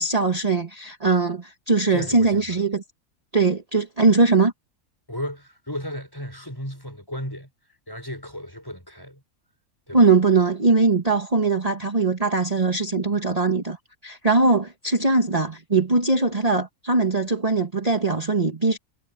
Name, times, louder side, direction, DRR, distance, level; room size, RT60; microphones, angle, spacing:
voice 1, 0.0-2.8 3.3-4.5 9.9-13.8 14.0-18.8, right 3 dB, 25° right, 1.8 m, -21 dB
voice 2, 1.9-2.6 5.1-7.5 7.9-9.2 9.9-10.1, equal, 15° left, 5.0 m, -34 dB
omnidirectional pair, 1.5 m